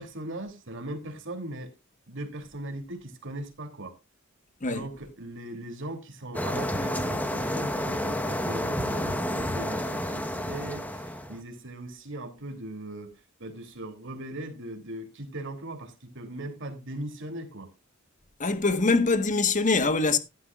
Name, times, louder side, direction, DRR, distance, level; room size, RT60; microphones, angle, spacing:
voice 1, 0.0-1.7 2.1-4.0 4.7-17.7, right 1 dB, 65° right, 3.1 m, -39 dB
sound 1, 6.3-11.4, equal, 10° left, 1.2 m, -30 dB
voice 2, 18.4-20.2, left 3 dB, 40° left, 1.4 m, -23 dB
13.5 x 11.5 x 2.4 m
head